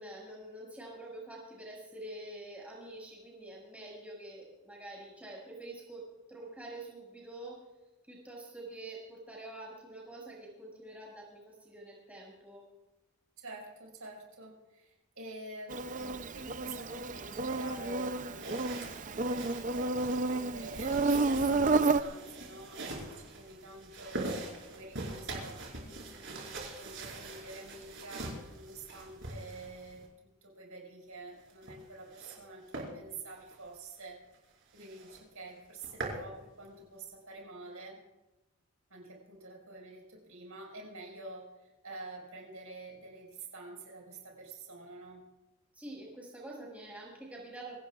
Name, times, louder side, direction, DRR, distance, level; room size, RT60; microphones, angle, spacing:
voice 1, 0.0-7.6 8.1-12.7 45.7-47.8, right 1 dB, 5° right, -4 dB, 6.1 m, -46 dB
voice 2, 13.4-18.5 18.8-34.2 34.7-38.0 38.9-45.3, right 2 dB, 75° right, -1 dB, 5.3 m, -48 dB
Insect, 15.7-22.0, right 3 dB, 35° right, 0.6 m, -31 dB
sound 1, 18.4-30.1 31.4-32.4 32.7-32.9 33.4-33.6 34.0-34.1 34.3-34.4 34.8-35.2 35.6-36.2, right 2 dB, 55° right, 5.0 m, -43 dB
25.5 x 17.5 x 2.5 m, 1.0 s
head